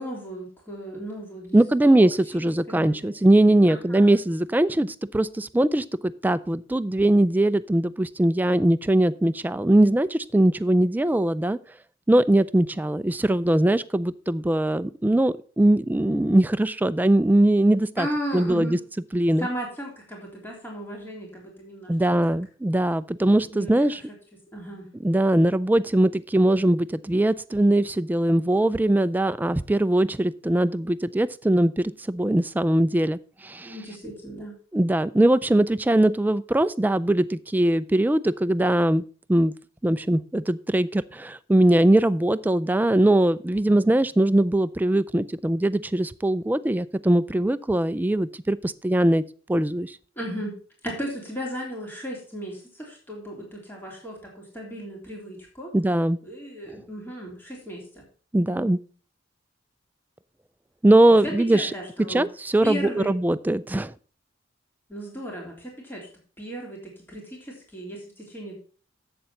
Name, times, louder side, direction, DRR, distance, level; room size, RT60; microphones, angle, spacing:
voice 1, 0.0-2.1 2.3-3.1 3.7-4.2 18.0-18.8 19.4-21.9 23.3-23.7 24.5-24.9 33.6-34.5 50.2-50.5 50.8-55.7 56.2-58.0 58.4-58.8 61.2-62.3 62.6-63.1 64.9-66.1 66.4-68.6, equal, 10° left, -2 dB, 2.7 m, -35 dB
voice 2, 1.5-11.6 12.1-18.1 18.3-18.8 19.1-19.5 21.9-24.0 25.0-33.7 34.7-39.0 39.3-39.5 39.8-49.2 49.5-50.0 55.7-56.2 58.3-58.8 60.8-61.7 62.1-63.9, right 1 dB, 10° right, 14 dB, 0.3 m, -21 dB
7.6 x 6.9 x 5.8 m, 0.41 s
head